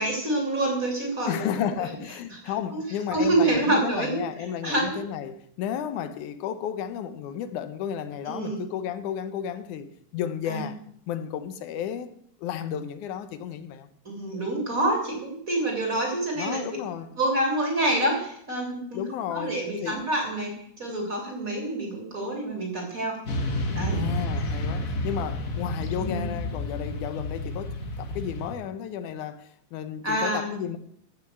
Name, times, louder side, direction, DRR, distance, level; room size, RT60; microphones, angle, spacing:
voice 1, 0.0-1.7 2.3-2.8 3.1-4.2 4.6-4.9 8.2-8.6 10.5-10.7 14.1-16.6 17.2-19.0 19.3-23.2 23.7-24.0 26.0-26.3 30.0-30.6, right 1 dB, 25° right, 3.4 m, -27 dB
voice 2, 1.3-10.8 11.1-13.9 16.3-17.1 18.9-20.0 23.9-30.8, left 9 dB, 85° left, 2.4 m, -33 dB
Motorcycle / Traffic noise roadway noise, 23.3-28.5, left 1 dB, 45° left, 1.1 m, -30 dB
14.5 x 6.4 x 7.8 m
omnidirectional pair, 3.4 m